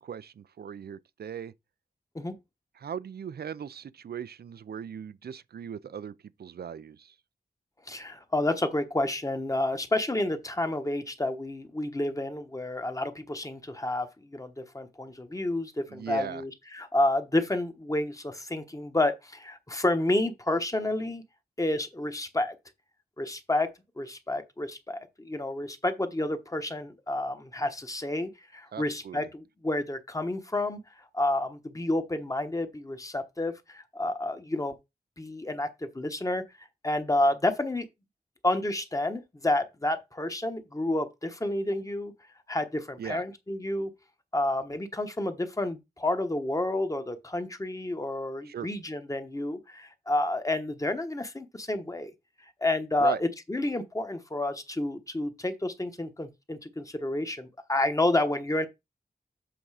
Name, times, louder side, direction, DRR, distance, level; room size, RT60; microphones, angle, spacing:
voice 1, 0.0-1.5 2.8-7.1 15.9-16.4 28.7-29.3 43.0-43.2 48.4-48.7 53.0-53.2, right 8 dB, 70° right, 0.5 m, -38 dB
voice 2, 7.9-21.2 21.6-22.5 23.2-23.7 24.0-30.8 31.1-34.7 35.2-36.4 36.8-37.9 38.4-42.1 42.5-43.9 44.3-52.1 52.6-58.7, left 1 dB, 20° left, 1.1 m, -30 dB
7.8 x 3.6 x 4.9 m
wide cardioid pair, 105°, 17 cm